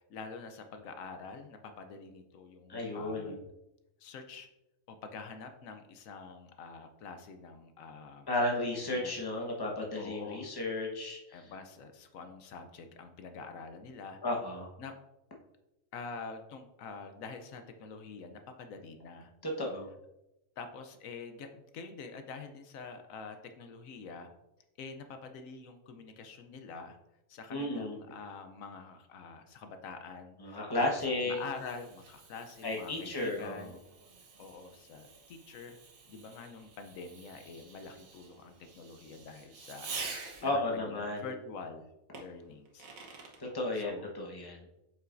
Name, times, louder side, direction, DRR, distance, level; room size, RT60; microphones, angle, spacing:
voice 1, 0.1-3.4 4.0-4.5 4.9-8.3 8.9-9.1 9.9-10.5 11.3-14.2 14.8-15.0 15.9-19.3 20.6-24.3 24.8-27.0 27.3-31.0 31.3-33.7 34.4-35.8 36.1-41.9 42.1-42.9 43.7-44.1, left 4 dB, 80° left, 7 dB, 1.1 m, -46 dB
voice 2, 2.7-3.4 8.3-11.5 14.2-14.7 19.4-19.9 27.5-28.0 30.4-31.4 32.6-33.7 40.4-41.3 43.4-44.6, left 2 dB, 20° left, -1 dB, 1.0 m, -33 dB
Fireworks, 30.8-40.7 42.1-43.4, right 4 dB, 85° right, 1.5 m, -48 dB
7.7 x 5.6 x 2.6 m, 0.91 s
omnidirectional pair, 1.4 m